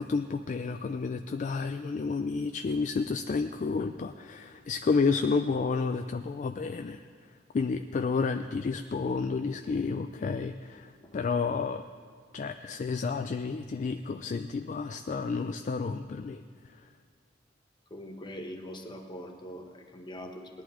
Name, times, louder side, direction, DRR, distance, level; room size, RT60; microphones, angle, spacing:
voice 1, 0.0-7.0 7.5-11.8 12.3-16.4, left 4 dB, 45° left, 8 dB, 0.3 m, -30 dB
voice 2, 17.9-20.6, equal, 25° left, 3 dB, 1.1 m, -42 dB
18.5 x 11.0 x 3.7 m, 2.2 s
head